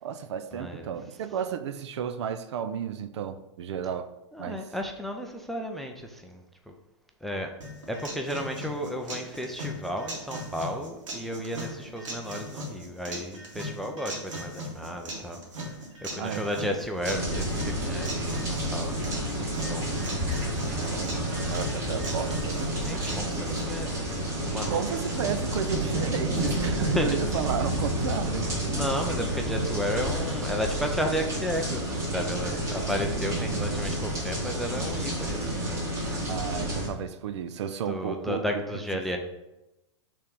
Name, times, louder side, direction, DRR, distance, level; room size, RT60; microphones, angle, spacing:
voice 1, 0.0-4.1 4.4-4.7 16.2-16.8 20.7-21.2 21.5-22.7 24.7-28.7 36.3-38.8, right 8 dB, 65° right, 11 dB, 0.6 m, -33 dB
voice 2, 0.5-0.9 4.3-6.7 7.2-7.5 7.9-15.4 15.6-15.7 16.0-19.0 19.4-19.9 22.7-24.8 26.4-27.2 28.7-35.9 37.9-39.2, equal, ahead, 3 dB, 0.4 m, -33 dB
sound 1, 7.6-23.6, equal, 85° right, 2.1 m, -39 dB
sound 2, 17.0-36.9, right 1 dB, 20° right, 1.5 m, -30 dB
5.5 x 3.5 x 5.3 m, 0.94 s
hypercardioid pair, 145°, 16 cm